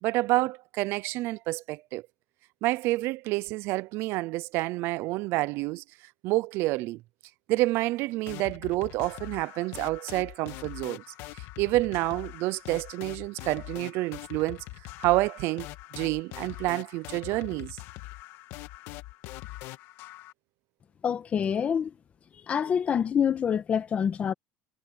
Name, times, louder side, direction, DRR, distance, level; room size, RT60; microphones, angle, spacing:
voice 1, 0.0-2.0 2.6-5.8 6.2-7.0 7.5-11.0 11.3-14.6 15.0-15.7 16.0-17.8, right 19 dB, 60° right, 0.5 m, -28 dB
sound 1, 8.3-20.3, left 18 dB, 65° left, 1.6 m, -43 dB
voice 2, 21.0-21.9 22.5-24.3, left 7 dB, 30° left, 1.4 m, -26 dB
cardioid pair, 140°, 5 cm